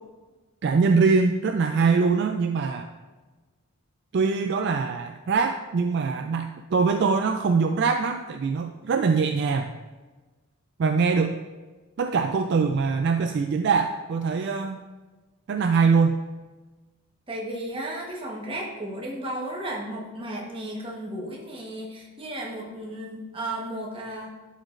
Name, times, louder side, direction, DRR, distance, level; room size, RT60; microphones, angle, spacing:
voice 1, 0.6-2.9 4.1-9.7 10.8-11.4 12.0-14.8 15.5-16.2, right 5 dB, 50° right, 6 dB, 0.3 m, -23 dB
voice 2, 17.3-24.3, right 1 dB, 25° right, -2 dB, 1.1 m, -34 dB
11.5 x 5.1 x 2.5 m, 1.3 s
head